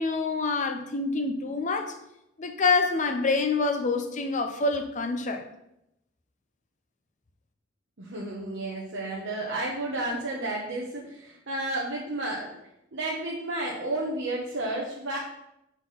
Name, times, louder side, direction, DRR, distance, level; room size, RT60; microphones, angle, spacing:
voice 1, 0.0-2.0 2.4-5.4, left 3 dB, 40° left, 0.7 m, -26 dB
voice 2, 8.0-12.6 12.9-15.2, right 2 dB, 65° right, 1.1 m, -32 dB
5.8 x 4.5 x 5.7 m
head